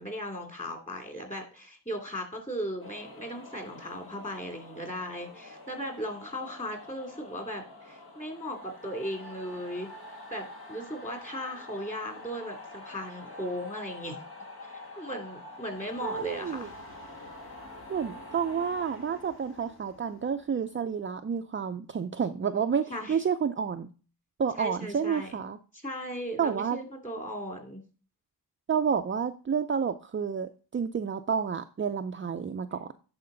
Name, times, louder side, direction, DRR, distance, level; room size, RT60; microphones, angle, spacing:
voice 1, 0.0-9.9 10.3-14.2 14.6-16.7 22.9-23.2 24.5-25.4 25.7-27.8, equal, 15° left, 3 dB, 2.6 m, -37 dB
sound 1, 2.8-21.3, left 2 dB, 60° left, 1.8 m, -47 dB
voice 2, 16.0-16.7 17.9-23.9 24.4-25.6 26.4-26.8 28.7-32.9, right 7 dB, 30° right, 7 dB, 0.5 m, -30 dB
10.5 x 4.3 x 3.8 m, 0.37 s
cardioid pair, 60°, 42 cm